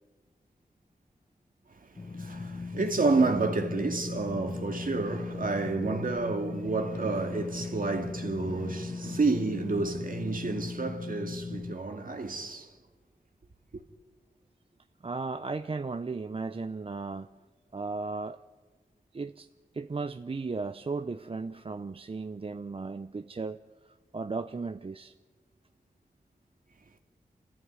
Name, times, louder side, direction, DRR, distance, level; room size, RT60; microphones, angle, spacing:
sound 1, 2.0-11.8, left 3 dB, 30° left, 0.9 m, -38 dB
voice 1, 2.2-12.7, right 3 dB, 65° right, 2.1 m, -30 dB
voice 2, 15.0-17.3 17.7-18.4 19.1-19.5 19.7-23.6 23.9-25.1, right 4 dB, 35° right, 0.6 m, -35 dB
26.5 x 14.5 x 9.6 m
wide cardioid pair, 70°, 16 cm